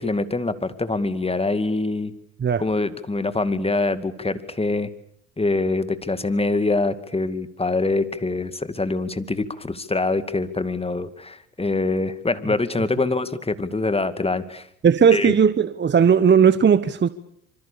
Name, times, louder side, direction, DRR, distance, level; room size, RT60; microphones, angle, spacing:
voice 1, 0.0-2.1 2.6-4.9 5.4-14.7 15.1-15.3, left 3 dB, 15° left, 2.3 m, -24 dB
voice 2, 14.8-17.1, right 7 dB, 25° right, 1.1 m, -16 dB
26.5 x 25.0 x 7.0 m
hypercardioid pair, 70°, 39 cm